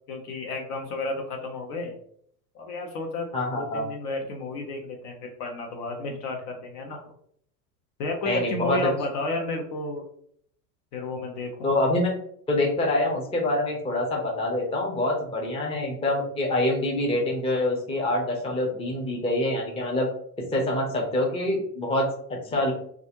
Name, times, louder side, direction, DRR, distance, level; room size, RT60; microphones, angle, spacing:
voice 1, 0.1-1.9 2.5-3.3 3.5-7.0 8.0-10.0 10.9-11.7 18.5-18.6, left 2 dB, 70° left, 3 dB, 0.8 m, -32 dB
voice 2, 3.3-3.8 8.3-8.8 11.6-12.1 12.5-20.1 20.5-22.7, left 1 dB, 10° left, -1 dB, 0.5 m, -25 dB
2.4 x 2.0 x 2.8 m, 0.64 s
hypercardioid pair, 90°, 48 cm